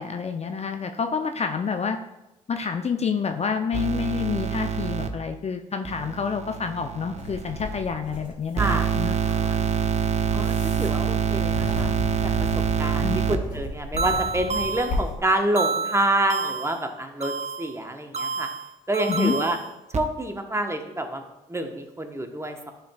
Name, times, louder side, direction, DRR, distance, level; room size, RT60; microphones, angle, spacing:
voice 1, 0.0-2.0 2.5-9.1 13.0-13.2 19.1-19.3, left 6 dB, 40° left, 6 dB, 0.5 m, -28 dB
sound 1, 3.7-5.1 5.8-7.8 8.6-13.4 14.0-15.0 15.6-16.8 17.2-17.7 18.1-20.0, right 7 dB, 40° right, 0.6 m, -26 dB
sound 2, 7.2-15.2, left 1 dB, 55° left, 2.2 m, -35 dB
voice 2, 8.6-9.8 10.3-11.9 12.2-12.3 12.8-18.5 18.9-19.6 19.9-22.7, right 1 dB, 15° right, 5 dB, 1.0 m, -28 dB
10.0 x 4.5 x 2.3 m, 0.95 s
hypercardioid pair, 50°, 17 cm